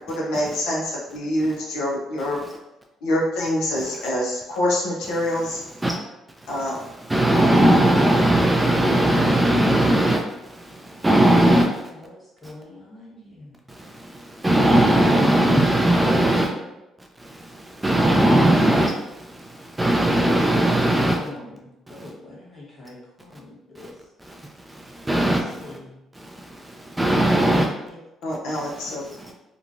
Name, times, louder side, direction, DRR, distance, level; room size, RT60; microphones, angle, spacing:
voice 1, 0.1-2.4 3.0-5.6 6.5-6.8 28.2-29.1, left 1 dB, 85° left, -3 dB, 0.7 m, -25 dB
voice 2, 7.1-11.7 13.8-16.5 17.2-21.2 21.9-22.0 23.8-23.9 24.3-24.4 24.7-25.8 26.2-26.4 26.6-27.7 29.2-29.3, right 1 dB, 15° right, 1 dB, 0.3 m, -19 dB
voice 3, 11.7-13.6 16.3-16.8 21.1-23.9 25.2-26.0 27.4-28.0, left 1 dB, 20° left, -6 dB, 1.4 m, -44 dB
2.9 x 2.3 x 2.5 m, 0.94 s
supercardioid pair, 80°, 0 cm